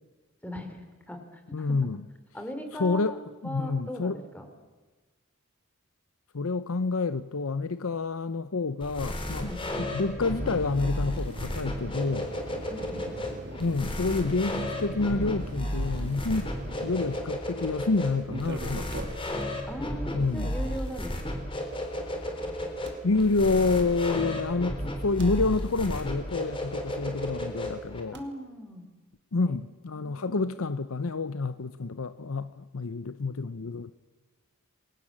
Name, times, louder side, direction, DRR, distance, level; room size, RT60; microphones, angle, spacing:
voice 1, 0.4-1.9 2.3-3.2 3.4-4.5 9.4-9.6 12.7-13.0 19.7-21.4 28.1-28.8 29.9-30.4, equal, 5° left, 6 dB, 3.4 m, -39 dB
voice 2, 1.5-2.1 2.7-4.2 6.3-9.5 9.8-12.3 13.6-16.5 16.8-19.0 20.1-20.6 23.0-28.2 29.3-33.9, left 3 dB, 65° left, 13 dB, 0.7 m, -28 dB
sound 1, 8.8-28.0, left 1 dB, 25° left, 3.7 m, -33 dB
sound 2, 10.4-17.4 18.2-19.4 20.9-21.0 22.9-23.0 24.8-25.3 28.1-28.2, right 1 dB, 50° right, 2.7 m, -41 dB
29.0 x 22.0 x 7.5 m, 1.3 s
head